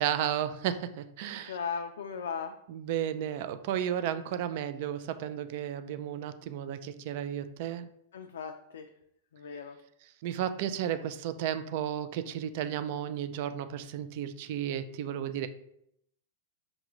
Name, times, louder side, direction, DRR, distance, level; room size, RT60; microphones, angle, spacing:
voice 1, 0.0-1.5 2.7-7.9 10.2-15.5, right 10 dB, 55° right, 11 dB, 0.3 m, -33 dB
voice 2, 1.4-2.6 8.1-8.9 9.3-9.8, left 6 dB, 85° left, 5 dB, 0.3 m, -37 dB
5.2 x 2.4 x 3.0 m, 0.74 s
hypercardioid pair, 130°, 0 cm